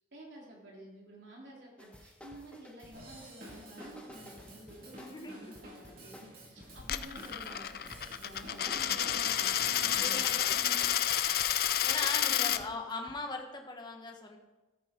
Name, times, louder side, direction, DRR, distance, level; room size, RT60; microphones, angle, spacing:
voice 1, 0.1-7.8 8.1-10.3 10.6-10.9 12.2-12.8, right 1 dB, 70° right, -3 dB, 3.5 m, -51 dB
sound 1, 1.8-13.1, left 1 dB, 5° left, 1.0 m, -54 dB
Drum kit / Drum, 2.9-10.4, equal, 50° right, 3.4 m, -50 dB
voice 2, 5.0-5.4 10.0-10.8 11.8-14.4, left 3 dB, 25° left, 3 dB, 1.3 m, -39 dB
Coin (dropping), 6.8-12.6, left 11 dB, 50° left, 0.5 m, -30 dB
13.5 x 8.9 x 4.5 m, 1.1 s
head